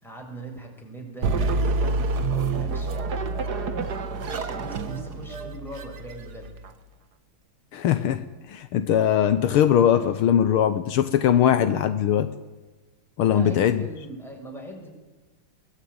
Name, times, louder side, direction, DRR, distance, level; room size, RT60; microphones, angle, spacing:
voice 1, 0.0-6.6 13.2-14.9, right 1 dB, ahead, 0 dB, 6.4 m, -40 dB
sound 1, 1.2-6.7, right 3 dB, 50° right, 1.8 m, -27 dB
voice 2, 7.7-12.3 13.2-13.8, left 9 dB, 75° left, 11 dB, 1.8 m, -21 dB
22.5 x 19.5 x 9.5 m, 1.2 s
omnidirectional pair, 2.4 m